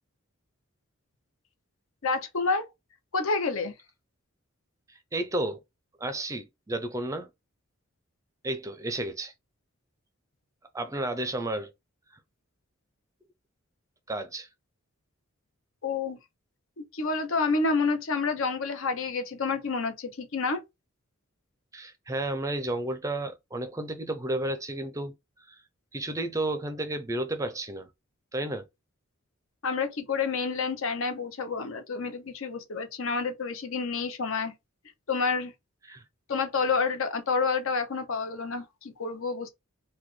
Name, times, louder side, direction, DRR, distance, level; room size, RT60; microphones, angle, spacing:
voice 1, 2.0-2.7 3.1-3.7 15.8-16.2 16.8-20.6 29.6-34.5 35.1-35.5 36.3-39.5, left 4 dB, 70° left, 0.7 m, -29 dB
voice 2, 4.9-5.6 6.0-7.3 8.4-9.3 10.7-11.7 14.1-14.5 21.7-25.1 25.5-25.6 25.9-27.9 28.3-28.7 35.9-36.0, right 1 dB, 15° right, 0.5 m, -32 dB
4.0 x 2.2 x 3.1 m
head